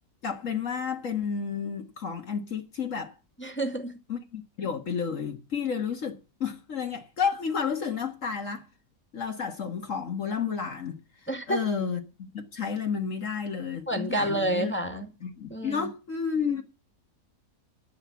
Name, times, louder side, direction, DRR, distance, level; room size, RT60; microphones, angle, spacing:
voice 1, 0.2-3.1 4.1-8.7 9.1-11.0 11.5-14.7 15.2-16.6, left 6 dB, 60° left, 1.8 m, -31 dB
voice 2, 3.4-3.9 11.3-11.7 13.9-15.1 15.5-15.9, right 1 dB, 10° left, 2.0 m, -29 dB
11.5 x 7.8 x 7.2 m
omnidirectional pair, 1.5 m